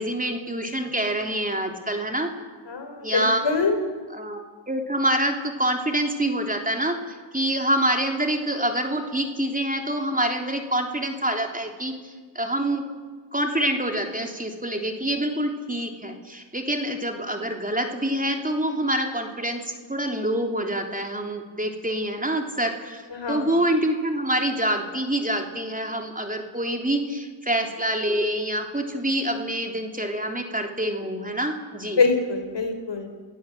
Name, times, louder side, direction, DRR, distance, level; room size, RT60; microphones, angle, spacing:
voice 1, 0.0-2.3 3.0-3.4 4.1-4.4 4.7-7.0 7.3-12.8 13.3-32.0, right 1 dB, 15° right, 4 dB, 3.4 m, -26 dB
voice 2, 2.7-3.7 23.1-23.5 31.9-33.1, left 4 dB, 60° left, 6 dB, 4.2 m, -24 dB
27.5 x 17.0 x 7.9 m, 1.5 s
cardioid pair, 60°, 47 cm